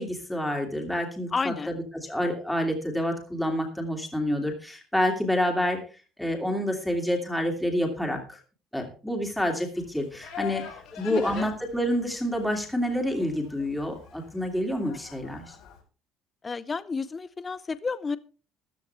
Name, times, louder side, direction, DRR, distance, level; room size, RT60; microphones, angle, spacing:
voice 1, 0.0-5.8 6.2-8.4 8.7-10.7 11.0-15.5, equal, 5° left, 2 dB, 2.7 m, -28 dB
voice 2, 1.3-1.7 11.1-11.5 16.4-18.2, left 4 dB, 20° left, 16 dB, 0.6 m, -31 dB
Livestock farm animals working animals, 9.7-15.8, left 9 dB, 80° left, 4.2 m, -44 dB
14.0 x 13.0 x 3.4 m, 0.35 s
cardioid pair, 160°, 0 cm